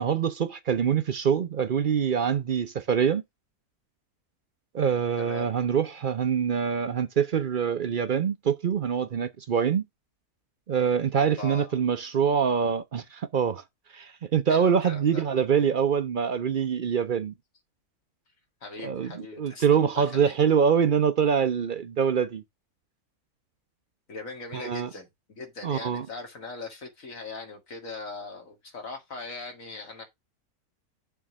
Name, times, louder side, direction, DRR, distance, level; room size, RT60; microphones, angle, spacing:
voice 1, 0.0-3.2 4.7-9.8 10.7-13.6 13.9-17.3 18.8-19.1 19.4-22.4 24.5-24.9 25.6-26.1, right 7 dB, 55° right, 0.5 m, -25 dB
voice 2, 5.2-5.5 11.1-11.8 14.5-15.3 18.6-20.3 24.1-30.0, left 3 dB, 60° left, 2.4 m, -40 dB
6.9 x 3.5 x 6.1 m
omnidirectional pair, 1.6 m